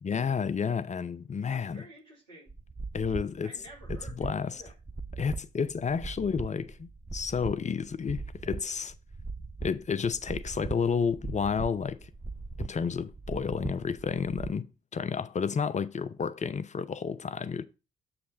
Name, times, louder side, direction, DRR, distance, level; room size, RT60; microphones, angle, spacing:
voice 1, 0.0-1.8 2.9-3.5 3.9-4.6 5.2-8.9 9.6-12.1 12.6-17.6, left 6 dB, 35° left, 0.6 m, -31 dB
voice 2, 1.4-2.5 3.4-4.7, right 1 dB, 90° right, 1.9 m, -51 dB
sound 1, 2.5-14.5, right 4 dB, 10° right, 0.4 m, -40 dB
7.0 x 3.2 x 6.1 m
hypercardioid pair, 40°, 21 cm